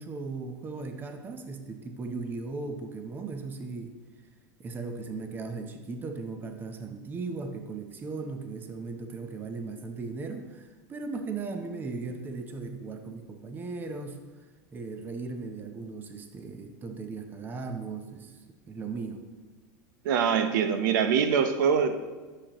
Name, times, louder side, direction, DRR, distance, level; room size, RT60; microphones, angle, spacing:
voice 1, 0.0-4.0 4.6-14.2 14.7-18.4 18.7-19.2, right 4 dB, 20° right, 6 dB, 0.7 m, -37 dB
voice 2, 20.0-22.0, right 7 dB, 75° right, 9 dB, 0.6 m, -24 dB
9.8 x 6.6 x 2.9 m, 1.3 s
supercardioid pair, 145°, 10 cm